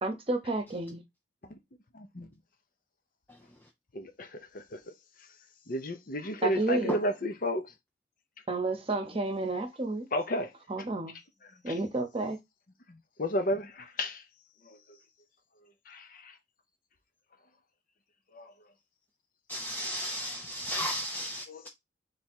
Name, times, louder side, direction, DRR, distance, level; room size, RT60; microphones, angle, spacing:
voice 1, 0.0-1.0 6.4-6.9 8.5-10.1 10.7-11.1 11.6-12.4, right 2 dB, 30° right, 1.0 m, -31 dB
voice 2, 1.9-2.3 3.9-4.8 5.7-7.6 10.1-10.5 11.7-11.8 12.9-14.2 14.6-14.8 15.9-16.3 18.3-18.5 21.5-21.7, equal, 50° left, 0.8 m, -33 dB
voice 3, 19.5-21.7, equal, 10° left, 0.5 m, -34 dB
3.6 x 3.4 x 4.3 m
head